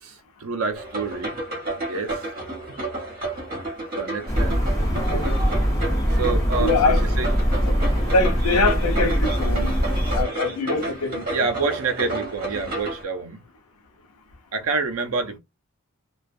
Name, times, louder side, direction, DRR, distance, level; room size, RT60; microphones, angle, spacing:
voice 1, 0.0-1.4 1.7-2.2 4.0-4.6 6.1-7.3 11.3-13.4 14.5-15.4, right 4 dB, 70° right, 0.6 m, -28 dB
sound 1, 0.7-13.0, right 2 dB, 40° right, 1.1 m, -31 dB
sound 2, 4.3-10.2, equal, 15° left, 0.9 m, -22 dB
voice 2, 4.9-5.4 6.6-7.1 7.6-7.7 8.1-9.8 10.1-11.3, left 3 dB, 85° left, 0.6 m, -24 dB
2.3 x 2.3 x 2.5 m
head